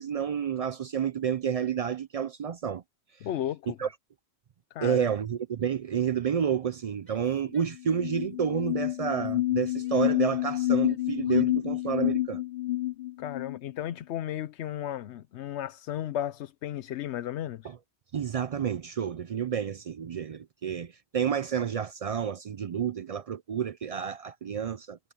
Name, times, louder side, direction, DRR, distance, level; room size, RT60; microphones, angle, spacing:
voice 1, 0.0-2.8 3.8-3.9 4.8-12.4 18.1-25.0, right 8 dB, 60° right, 0.3 m, -30 dB
voice 2, 3.2-3.8 4.7-5.0 13.2-17.7, left 11 dB, 90° left, 0.9 m, -34 dB
Female speech woman speaking / Yell, 7.0-8.2 8.5-10.0 10.3-12.2, equal, 10° left, 3.9 m, -62 dB
sound 1, 7.5-7.6 7.9-13.6, left 15 dB, 60° left, 0.7 m, -28 dB
omnidirectional pair, 1.1 m